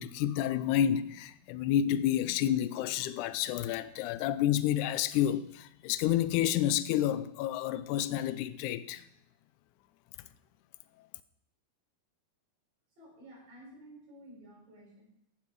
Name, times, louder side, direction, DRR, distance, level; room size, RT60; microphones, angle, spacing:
voice 1, 0.0-9.0, left 11 dB, 85° left, 1.7 m, -29 dB
voice 2, 13.0-15.0, right 1 dB, 65° right, 7.5 m, -53 dB
16.5 x 7.5 x 4.7 m
omnidirectional pair, 4.2 m